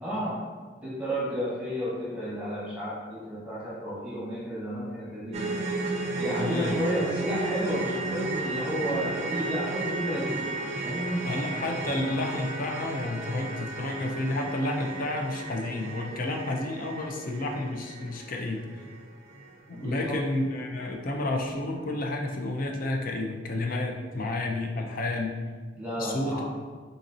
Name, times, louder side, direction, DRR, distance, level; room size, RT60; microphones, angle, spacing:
voice 1, 0.0-0.4 0.8-5.5 6.2-10.5 10.8-11.3 19.7-20.2 25.8-26.4, equal, 5° right, -9 dB, 1.3 m, -32 dB
sound 1, 5.3-19.5 19.8-20.0 20.4-20.5, right 3 dB, 35° right, 0.5 m, -34 dB
voice 2, 6.4-6.7 11.3-18.8 19.7-25.3 26.0-26.4, left 2 dB, 45° left, 1 dB, 0.5 m, -31 dB
4.2 x 3.9 x 2.6 m, 1.5 s
head